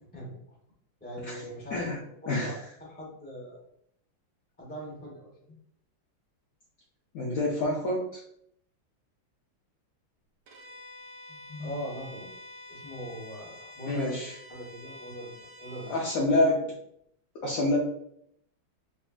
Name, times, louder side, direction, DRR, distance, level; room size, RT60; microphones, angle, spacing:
voice 1, 0.1-0.6 1.0-1.9 2.2-3.6 4.6-5.6 11.3-12.3 12.7-14.2 14.5-16.2, equal, 5° left, -5 dB, 0.7 m, -41 dB
voice 2, 2.3-2.6 7.1-8.0 13.9-14.3 15.9-16.7 17.4-17.8, left 2 dB, 65° left, -4 dB, 0.9 m, -26 dB
Bowed string instrument, 10.5-16.2, left 1 dB, 65° right, 1.0 m, -48 dB
5.2 x 2.7 x 2.4 m, 0.71 s
omnidirectional pair, 2.3 m